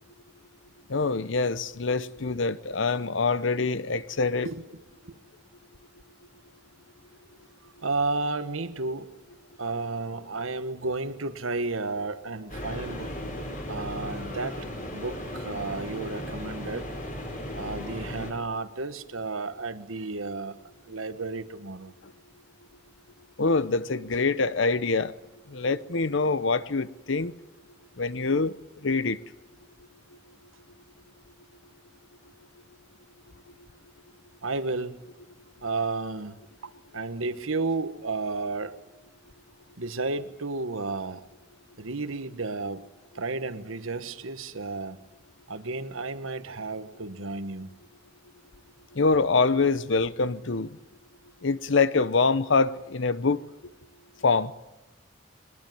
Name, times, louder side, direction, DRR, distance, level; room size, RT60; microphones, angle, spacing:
voice 1, 0.9-4.5 22.0-22.1 23.4-25.1 25.5-27.3 28.0-28.6 28.8-29.2 48.9-50.8 51.4-53.4 54.2-54.5, left 4 dB, 65° left, 0.8 m, -25 dB
voice 2, 7.8-9.1 9.6-13.1 13.7-14.7 14.9-16.9 17.5-20.5 20.9-21.9 34.4-35.0 35.6-38.8 39.8-41.2 41.8-42.8 43.1-45.0 45.5-47.7, right 3 dB, 90° right, 1.4 m, -32 dB
sound 1, 12.5-18.3, equal, 40° left, 4.8 m, -36 dB
22.0 x 20.5 x 9.3 m
head